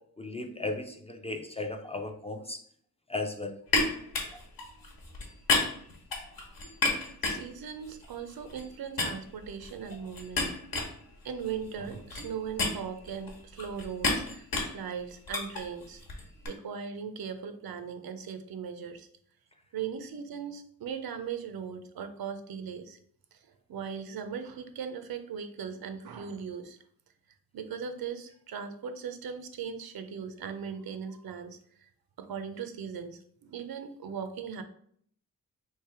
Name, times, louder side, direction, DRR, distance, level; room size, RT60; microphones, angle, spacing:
voice 1, 0.2-2.6 3.1-3.6, left 2 dB, 20° left, 5 dB, 0.3 m, -35 dB
sound 1, 3.7-8.7 9.0-16.5, left 3 dB, 80° left, 1.1 m, -33 dB
voice 2, 7.2-10.5 11.2-16.2 16.5-19.1 19.7-23.0 23.3-23.4 23.7-26.8 27.5-31.9 32.2-34.6, right 7 dB, 90° right, 9 dB, 0.6 m, -39 dB
3.3 x 3.0 x 4.5 m, 0.62 s
wide cardioid pair, 160°, 35 cm